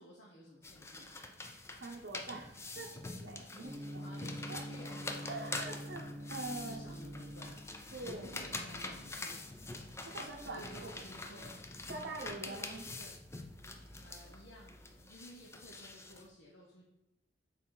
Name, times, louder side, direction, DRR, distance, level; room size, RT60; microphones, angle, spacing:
voice 1, 0.0-1.3 4.0-6.3 6.6-7.6 8.0-9.4 10.2-11.6 12.0-13.1 14.0-16.8, equal, 65° left, -3 dB, 0.9 m, -54 dB
sound 1, 0.6-16.3, left 2 dB, 15° left, 0.5 m, -45 dB
voice 2, 1.8-2.9 3.2-4.1 4.5-4.6 5.2-6.9 7.9-8.3 10.1-11.0 11.9-12.8, right 2 dB, 65° right, -1 dB, 0.7 m, -44 dB
Gong, 3.6-11.7, equal, 10° right, 1.1 m, -47 dB
6.2 x 4.1 x 3.9 m, 0.95 s
head